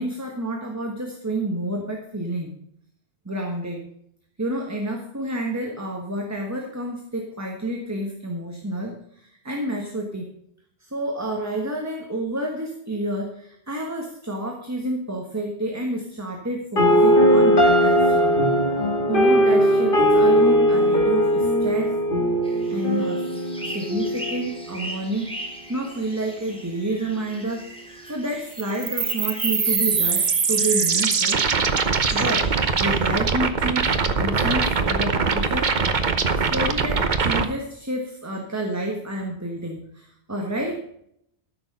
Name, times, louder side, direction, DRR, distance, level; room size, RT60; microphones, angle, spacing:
voice 1, 0.0-2.5 3.2-3.9 4.4-10.3 10.8-18.4 19.1-22.0 22.7-23.3 23.6-25.3 25.7-27.7 28.1-31.4 32.1-35.7 36.3-40.8, right 1 dB, 15° right, 1 dB, 1.4 m, -29 dB
sound 1, 16.8-24.8, equal, 55° left, 2.2 m, -19 dB
sound 2, 22.4-33.1, right 1 dB, 5° left, 2.5 m, -39 dB
sound 3, 28.6-37.5, right 5 dB, 45° right, 1.0 m, -22 dB
13.5 x 6.6 x 5.4 m, 0.72 s
omnidirectional pair, 1.1 m